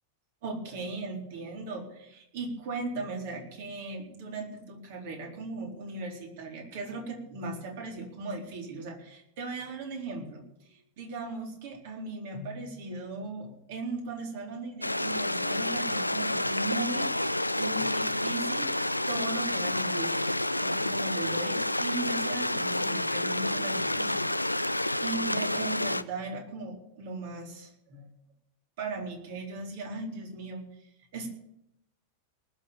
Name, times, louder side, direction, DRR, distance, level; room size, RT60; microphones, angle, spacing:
voice 1, 0.4-17.3 17.6-18.7 19.1-28.0 28.8-30.6 31.1-31.3, right 3 dB, 50° right, 1 dB, 4.1 m, -38 dB
Stream, 14.8-26.0, left 1 dB, 85° left, 0.5 m, -29 dB
19.5 x 7.2 x 8.9 m, 0.78 s
figure-of-eight pair, 90°, 0 cm